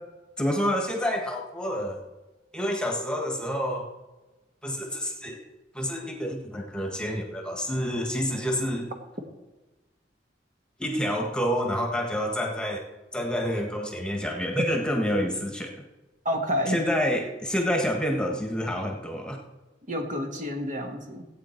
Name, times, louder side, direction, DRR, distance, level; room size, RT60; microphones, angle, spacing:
voice 1, 0.4-2.0 2.5-3.9 4.6-5.4 5.7-8.9 10.8-12.8 13.1-15.8 16.7-19.4, equal, 5° left, 1 dB, 1.5 m, -28 dB
voice 2, 16.2-16.8 19.9-21.3, equal, 45° right, 3 dB, 1.6 m, -29 dB
17.0 x 8.7 x 4.5 m, 1.1 s
head